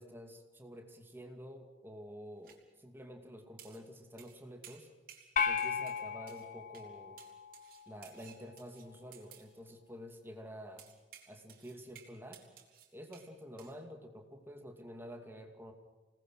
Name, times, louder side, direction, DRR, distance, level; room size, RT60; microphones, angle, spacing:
voice 1, 0.0-4.9 5.4-7.2 7.9-10.9 11.3-12.4 12.9-15.7, equal, 10° right, 4 dB, 2.4 m, -49 dB
sound 1, 2.4-2.6 3.6-3.9 4.2-4.4 4.6-5.3 5.6-6.5 6.7-6.9 7.2-9.5 10.8-13.3 13.6-13.7, right 9 dB, 50° right, 3.8 m, -57 dB
sound 2, 5.4-7.8, left 6 dB, 45° left, 1.1 m, -36 dB
28.0 x 19.5 x 6.3 m, 1.3 s
head